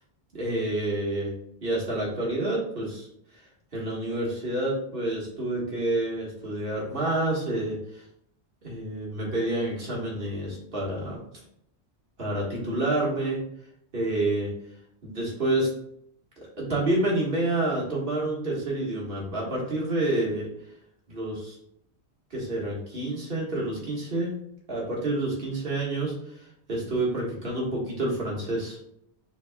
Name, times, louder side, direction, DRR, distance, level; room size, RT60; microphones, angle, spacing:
voice 1, 0.3-1.3 1.6-3.1 3.7-8.0 8.6-11.2 12.2-13.4 13.9-14.5 15.0-15.7 16.6-20.5 21.1-21.5 22.3-24.4 24.7-26.1 26.7-28.8, right 1 dB, 55° right, -4 dB, 1.8 m, -28 dB
6.4 x 3.6 x 2.3 m, 0.71 s
omnidirectional pair, 1.2 m